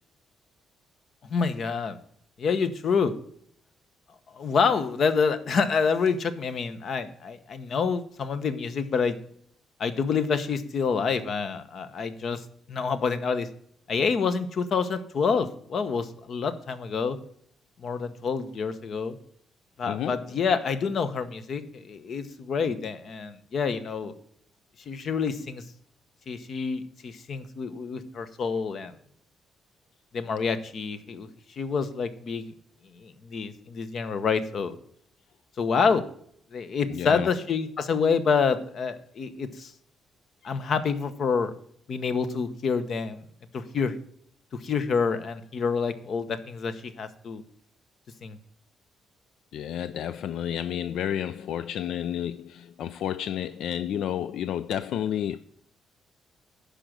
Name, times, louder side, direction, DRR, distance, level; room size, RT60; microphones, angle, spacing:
voice 1, 1.2-2.0 2.4-3.1 4.3-9.2 9.8-12.4 12.7-13.5 13.9-17.2 17.8-19.2 19.8-24.1 24.9-25.6 26.3-28.9 30.1-31.3 31.6-32.5 32.9-34.8 35.6-36.0 36.5-39.7 40.4-41.5 41.9-43.3 43.5-43.9 44.6-47.4 48.2-48.4, left 5 dB, 45° left, 0.9 m, -27 dB
voice 2, 19.9-20.2 36.9-37.3 40.4-40.5 49.5-55.4, left 10 dB, 75° left, 0.4 m, -31 dB
11.5 x 5.1 x 6.0 m
cardioid pair, 155°, 0 cm